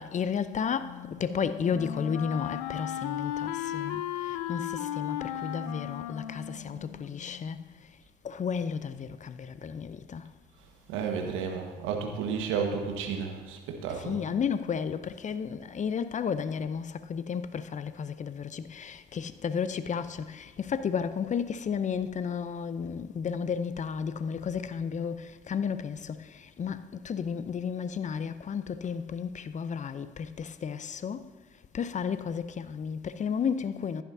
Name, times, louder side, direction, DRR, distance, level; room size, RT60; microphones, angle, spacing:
voice 1, 0.0-8.0 8.2-10.3 13.9-31.3 31.7-34.0, left 6 dB, 35° left, 0.7 m, -33 dB
Wind instrument woodwind instrument, 0.8-7.6, left 11 dB, 80° left, 0.5 m, -36 dB
voice 2, 10.9-14.2, right 6 dB, 70° right, 1.5 m, -32 dB
15.0 x 11.0 x 2.8 m
hypercardioid pair, 55°, 21 cm